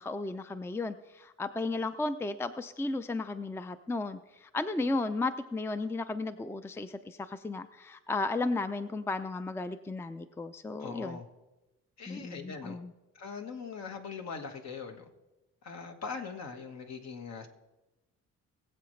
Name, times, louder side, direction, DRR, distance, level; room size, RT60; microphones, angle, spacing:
voice 1, 0.0-11.2 12.1-12.9, left 3 dB, 10° left, 11 dB, 0.5 m, -34 dB
voice 2, 10.8-11.3 12.0-12.8 13.1-15.1 15.6-17.5, left 5 dB, 60° left, 5 dB, 1.6 m, -41 dB
21.0 x 7.8 x 3.2 m, 1.0 s
cardioid pair, 90°, 30 cm